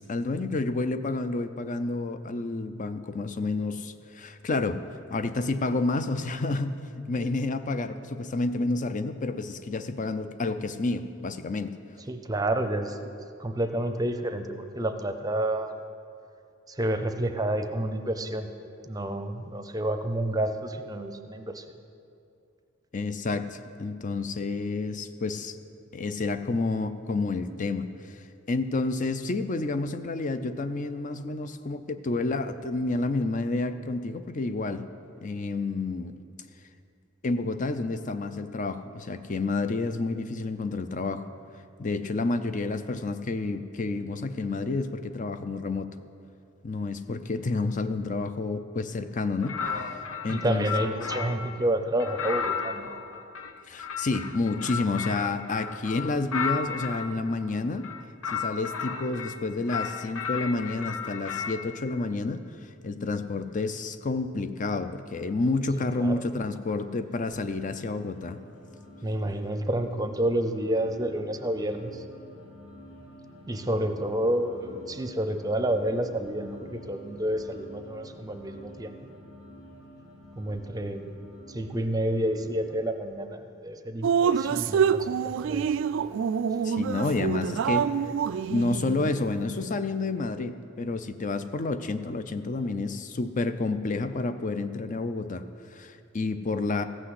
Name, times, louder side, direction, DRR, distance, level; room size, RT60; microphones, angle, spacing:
voice 1, 0.1-4.8 5.1-11.7 22.9-25.6 25.9-27.9 28.5-34.9 35.2-36.2 37.2-41.3 41.8-45.9 46.6-51.0 53.7-57.9 58.3-68.4 86.6-87.9 88.5-96.8, left 3 dB, 40° left, 10 dB, 0.5 m, -30 dB
voice 2, 12.1-13.0 13.4-15.7 16.7-18.5 18.9-21.6 50.3-52.9 66.0-66.2 69.0-72.0 73.5-79.0 80.4-81.1 81.5-85.7, right 1 dB, 20° right, 7 dB, 0.7 m, -29 dB
sound 1, 49.4-51.5 52.0-57.1 57.8-59.4 59.7-61.7, left 6 dB, 90° left, 0.8 m, -34 dB
sound 2, 68.1-82.8, left 1 dB, 75° left, 1.8 m, -49 dB
Drip, 84.0-89.3, right 7 dB, 65° right, 0.3 m, -26 dB
15.5 x 6.4 x 7.7 m, 2.5 s
head